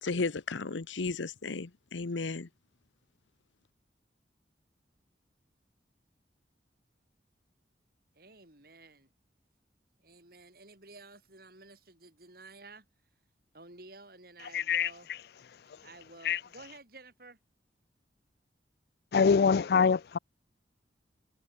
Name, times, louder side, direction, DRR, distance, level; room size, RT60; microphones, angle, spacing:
voice 1, 0.0-2.5, left 3 dB, 85° left, 0.9 m, -34 dB
voice 2, 8.1-9.1 10.0-12.9 13.5-15.1 15.8-17.4, right 2 dB, 55° right, 5.5 m, -52 dB
voice 3, 14.5-14.9 16.2-16.4 19.1-20.2, left 6 dB, 55° left, 0.4 m, -24 dB
head